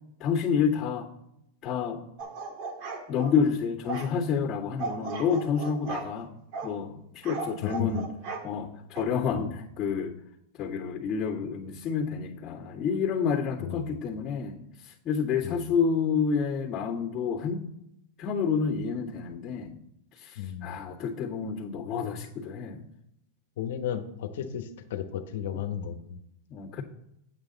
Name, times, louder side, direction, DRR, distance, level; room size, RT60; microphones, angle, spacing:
voice 1, 0.2-1.1 1.6-2.0 3.1-6.3 6.6-8.1 8.4-10.1 10.6-17.6 18.2-19.7 20.2-22.9 26.5-26.8, left 6 dB, 25° left, -12 dB, 2.0 m, -29 dB
sound 1, 2.2-3.4 3.9-4.1 4.8-6.1 6.5-6.7 7.2-8.5 8.9-9.0, right 4 dB, 50° right, 1.7 m, -36 dB
voice 2, 7.6-8.0 9.3-9.5 13.6-13.9 15.4-15.7 20.4-20.7 23.6-26.2, left 9 dB, 70° left, 8 dB, 1.2 m, -34 dB
8.8 x 7.9 x 4.0 m, 0.80 s
hypercardioid pair, 125°, 0 cm